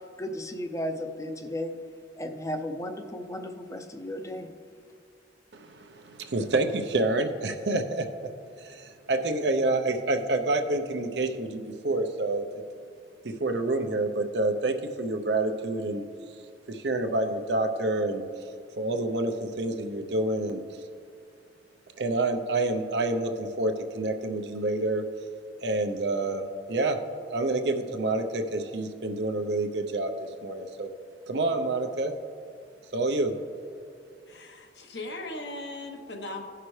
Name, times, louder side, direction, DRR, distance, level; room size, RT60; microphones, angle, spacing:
voice 1, 0.2-1.8 2.1-4.5, left 1 dB, 20° left, 5 dB, 0.6 m, -34 dB
voice 2, 5.5-8.1 8.6-12.6 13.2-16.1 16.7-18.2 18.8-20.6 22.0-25.0 25.6-26.4 26.7-27.0 27.3-30.9 31.3-32.1 32.9-33.3, right 2 dB, 70° right, 6 dB, 0.7 m, -28 dB
voice 3, 34.3-36.4, left 2 dB, 70° left, 3 dB, 1.0 m, -38 dB
16.0 x 5.8 x 3.2 m, 2.3 s
head